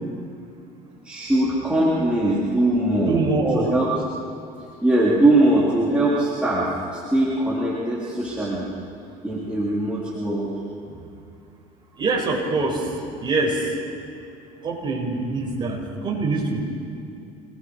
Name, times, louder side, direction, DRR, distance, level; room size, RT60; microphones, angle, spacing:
voice 1, 1.0-3.2 3.5-3.9 4.8-8.7 9.2-10.5, right 1 dB, 5° right, -8 dB, 4.0 m, -21 dB
voice 2, 3.1-3.7 12.0-13.7 14.6-16.6, right 3 dB, 30° right, -1 dB, 6.1 m, -24 dB
29.0 x 19.5 x 4.9 m, 2.6 s
supercardioid pair, 100°, 17 cm